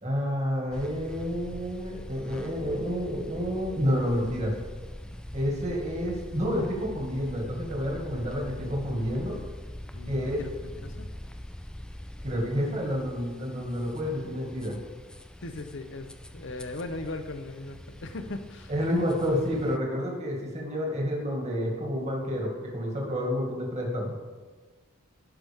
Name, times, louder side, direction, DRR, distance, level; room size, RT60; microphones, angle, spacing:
voice 1, 0.0-4.5 5.3-9.4 10.1-10.4 12.2-14.8 18.7-24.2, equal, 30° right, -1 dB, 2.0 m, -29 dB
sound 1, 0.7-19.8, left 1 dB, 5° left, 0.3 m, -43 dB
voice 2, 9.9-11.1 15.4-18.7, left 2 dB, 60° left, 9 dB, 0.7 m, -38 dB
15.5 x 6.0 x 3.6 m, 1.4 s
head